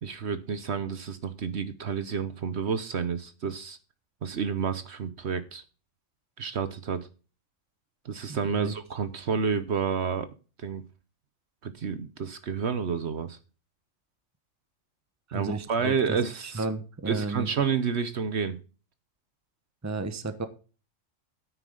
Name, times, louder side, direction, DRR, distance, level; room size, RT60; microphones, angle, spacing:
voice 1, 0.0-3.8 4.2-5.6 6.4-7.1 8.0-10.3 10.6-10.8 11.6-13.4 15.3-16.6 17.1-18.6, right 6 dB, 55° right, 12 dB, 1.1 m, -30 dB
voice 2, 8.3-8.7 15.3-16.2 16.5-17.5 19.8-20.5, right 3 dB, 15° right, 10 dB, 0.9 m, -33 dB
9.6 x 9.3 x 3.8 m, 0.35 s
omnidirectional pair, 1.4 m